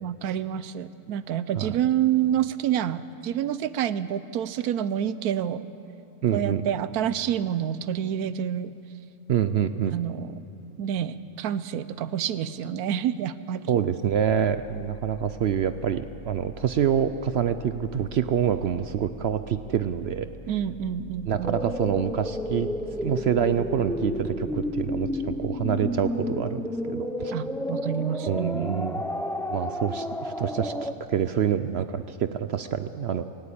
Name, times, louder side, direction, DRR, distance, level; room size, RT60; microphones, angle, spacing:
voice 1, 0.0-5.7 6.3-8.7 9.9-10.5 10.8-13.7 20.5-21.6 27.3-29.0, right 10 dB, 90° right, 15 dB, 1.2 m, -28 dB
voice 2, 6.2-6.6 9.3-10.0 13.7-20.3 21.3-22.7 23.0-27.3 28.3-29.0 29.5-33.2, right 8 dB, 65° right, 11 dB, 0.6 m, -26 dB
sound 1, 14.0-25.5, equal, 30° left, 3.0 m, -46 dB
sound 2, 21.4-30.9, left 1 dB, 5° left, 0.4 m, -31 dB
18.0 x 16.5 x 8.6 m, 2.7 s
omnidirectional pair, 1.6 m